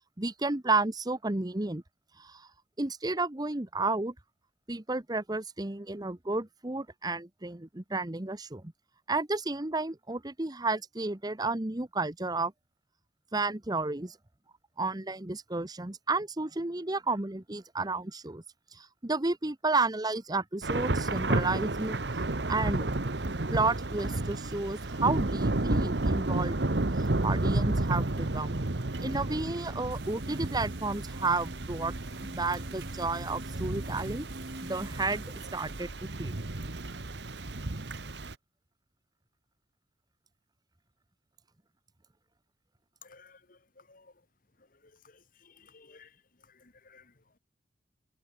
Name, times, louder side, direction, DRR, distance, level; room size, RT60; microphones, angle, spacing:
voice 1, 0.2-1.8 2.2-2.5 2.8-4.1 4.7-8.6 9.1-12.5 13.3-14.2 14.8-18.4 18.7-22.0 22.5-22.9 23.5-26.6 27.2-28.6 29.0-32.0 32.2-34.3 34.6-35.2 35.5-36.3, right 3 dB, 20° right, 1.1 m, -32 dB
Thunder / Rain, 20.6-38.3, right 2 dB, 70° right, 1.4 m, -32 dB
sound 1, 29.9-35.8, right 1 dB, 55° right, 6.5 m, -47 dB
voice 2, 43.0-43.6 43.9-44.1 45.4-46.1 46.6-47.1, left 5 dB, 50° left, 2.0 m, -56 dB
head